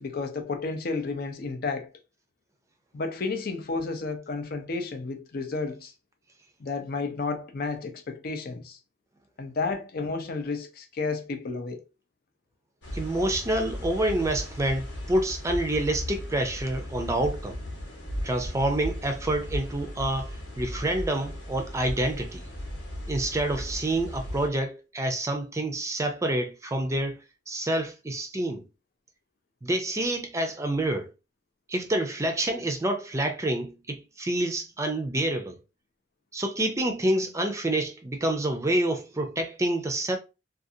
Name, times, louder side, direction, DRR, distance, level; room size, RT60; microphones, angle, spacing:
voice 1, 0.0-1.9 2.9-5.9 6.6-8.8 9.4-11.8, left 3 dB, 55° left, 0.5 m, -32 dB
sound 1, 12.8-24.5, equal, 75° left, 1.0 m, -36 dB
voice 2, 12.9-17.6 18.2-22.5 23.1-27.2 27.5-28.6 29.6-31.1 31.7-35.6 36.3-40.2, right 1 dB, 15° right, 0.5 m, -28 dB
2.5 x 2.4 x 2.7 m
head